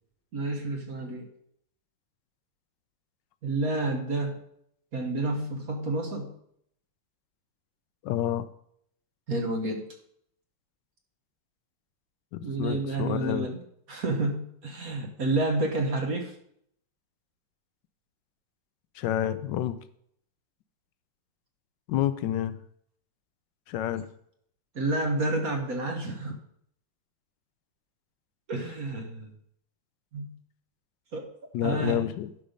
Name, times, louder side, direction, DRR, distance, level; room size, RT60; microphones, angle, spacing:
voice 1, 0.3-1.3 3.4-4.4 4.9-6.3 9.3-9.9 12.4-13.6 13.9-16.3 24.7-26.4 28.5-29.3 30.1-30.3 31.1-32.1, right 2 dB, 50° right, 3 dB, 1.5 m, -29 dB
voice 2, 8.0-8.5 12.3-13.5 18.9-19.8 21.9-22.6 23.7-24.1 31.5-32.3, left 11 dB, 75° left, 13 dB, 1.2 m, -29 dB
11.5 x 5.5 x 5.1 m, 0.69 s
omnidirectional pair, 2.1 m